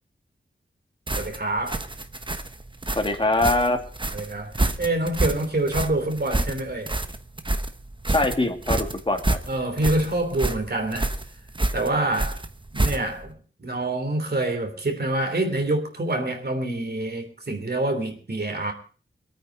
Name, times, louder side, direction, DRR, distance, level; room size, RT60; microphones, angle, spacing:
sound 1, 1.1-13.3, right 2 dB, 25° right, 1.1 m, -28 dB
voice 1, 1.1-1.8 4.1-6.9 9.5-11.1 11.7-12.4 12.7-18.7, right 2 dB, 55° right, 3.2 m, -26 dB
voice 2, 2.9-3.8 8.1-9.4, left 2 dB, 25° left, 2.5 m, -23 dB
22.0 x 9.2 x 5.1 m
wide cardioid pair, 80°, 20 cm